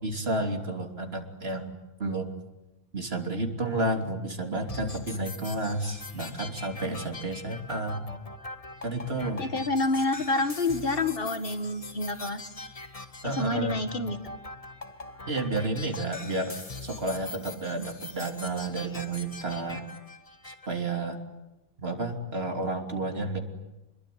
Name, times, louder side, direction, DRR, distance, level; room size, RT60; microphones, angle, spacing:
voice 1, 0.0-1.7 2.0-2.3 2.9-8.0 8.8-9.4 13.2-13.8 15.3-19.9 20.4-21.2 21.8-23.4, right 2 dB, 75° right, 4 dB, 3.4 m, -31 dB
sound 1, 4.7-20.7, left 3 dB, 35° left, 1.6 m, -42 dB
voice 2, 9.4-12.4 13.2-14.2, left 2 dB, 60° left, 8 dB, 2.1 m, -28 dB
27.0 x 22.0 x 9.4 m, 1.0 s
omnidirectional pair, 1.1 m